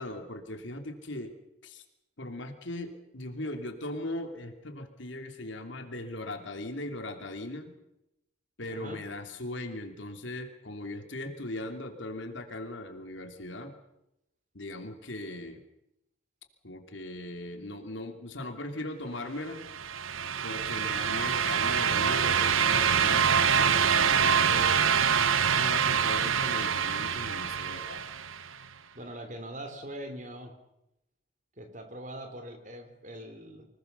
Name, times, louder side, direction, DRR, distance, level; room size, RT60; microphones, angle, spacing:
voice 1, 0.0-1.3 1.6-1.8 2.2-7.7 8.6-13.8 14.5-15.6 16.6-19.7 20.4-24.7 25.4-28.0, left 1 dB, 70° left, 5 dB, 2.9 m, -39 dB
voice 2, 8.7-9.0 28.9-30.5 31.6-33.7, right 1 dB, 40° right, 7 dB, 3.5 m, -42 dB
sound 1, 19.6-28.5, right 7 dB, 90° right, 1.1 m, -25 dB
25.0 x 19.5 x 6.9 m, 0.85 s
head